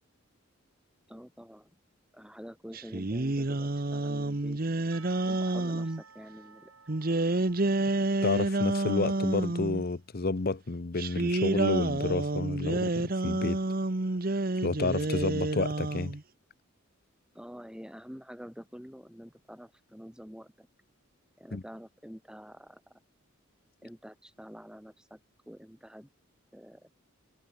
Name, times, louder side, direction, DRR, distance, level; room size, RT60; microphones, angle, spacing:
voice 1, 1.1-1.7 2.1-4.6 5.3-6.7 17.3-20.7 21.4-22.8 23.8-25.2 25.5-26.1 26.5-26.9, equal, 5° right, 3.2 m, -47 dB
sound 1, 2.7-6.0 6.9-9.8 11.0-16.2, right 2 dB, 45° right, 1.1 m, -29 dB
Percussion / Church bell, 4.9-9.5, right 5 dB, 75° right, 7.9 m, -56 dB
voice 2, 8.2-13.6 14.6-16.1 21.5-21.6, left 3 dB, 45° left, 0.7 m, -30 dB
head